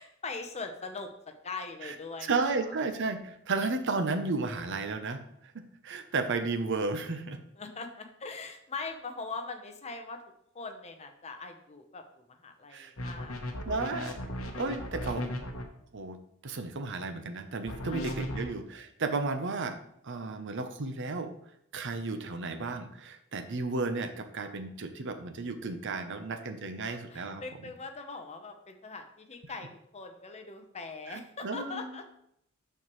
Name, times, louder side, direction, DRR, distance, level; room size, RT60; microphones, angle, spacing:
voice 1, 0.0-2.5 7.6-10.2 10.5-12.0 12.4-13.5 17.9-18.5 26.8-32.0, left 4 dB, 30° left, 6 dB, 0.8 m, -41 dB
voice 2, 2.2-5.2 5.8-7.4 12.7-12.9 13.7-14.1 14.6-15.3 15.9-16.2 16.4-19.8 20.0-21.3 21.7-27.4 31.1-32.0, right 3 dB, 55° right, 8 dB, 0.7 m, -33 dB
sound 1, 13.0-15.6 17.7-18.4, left 1 dB, 65° left, 1.0 m, -36 dB
12.0 x 4.6 x 3.1 m, 0.73 s
head